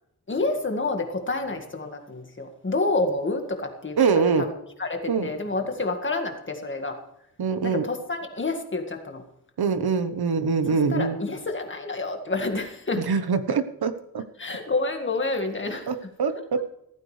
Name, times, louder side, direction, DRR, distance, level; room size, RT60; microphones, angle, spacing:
voice 1, 0.3-4.5 4.8-7.0 7.6-9.2 10.7-13.0 14.4-15.9, left 3 dB, 30° left, 4 dB, 1.9 m, -28 dB
voice 2, 4.0-4.5 5.1-5.3 7.4-7.9 9.6-11.2 13.1-14.2 15.9-16.7, right 5 dB, 75° right, 10 dB, 1.2 m, -24 dB
15.5 x 14.0 x 3.3 m, 0.79 s
wide cardioid pair, 180°, 38 cm